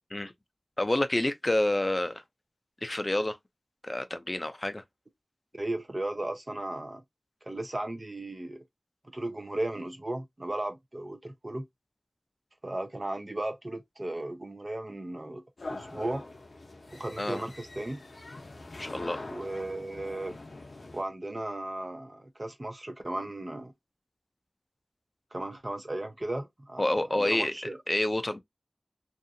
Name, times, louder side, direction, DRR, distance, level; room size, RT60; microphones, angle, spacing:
voice 1, 0.8-2.2 2.8-3.4 3.8-4.8 17.2-17.4 18.8-19.2 26.8-27.5 27.9-28.4, left 1 dB, 35° left, 0.4 m, -28 dB
voice 2, 5.5-7.0 7.4-8.6 9.0-11.7 12.6-15.4 15.7-16.2 16.9-18.0 19.3-20.4 20.9-23.7 25.3-27.8, right 1 dB, 40° right, 0.6 m, -36 dB
sound 1, 15.6-21.0, left 2 dB, 85° left, 0.6 m, -43 dB
2.7 x 2.4 x 2.5 m
wide cardioid pair, 60°, 0 cm